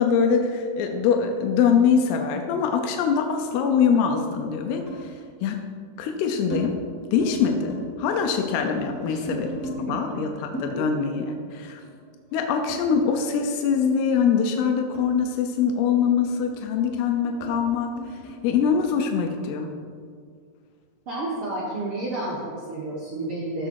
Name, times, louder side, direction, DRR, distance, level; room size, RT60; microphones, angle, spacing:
voice 1, 0.0-5.6 6.0-6.8 7.1-11.3 11.5-11.8 12.3-18.0 18.4-19.7, left 6 dB, 85° left, 4 dB, 2.8 m, -23 dB
sound 1, 2.9-3.6 4.9-5.1 5.8-6.6 7.0-7.3 7.6-9.8 10.5-13.4 13.7-18.7, right 2 dB, 15° left, 0.6 m, -39 dB
voice 2, 21.1-23.7, right 2 dB, 70° right, -5 dB, 1.3 m, -31 dB
14.5 x 6.6 x 4.7 m, 2.1 s
omnidirectional pair, 4.6 m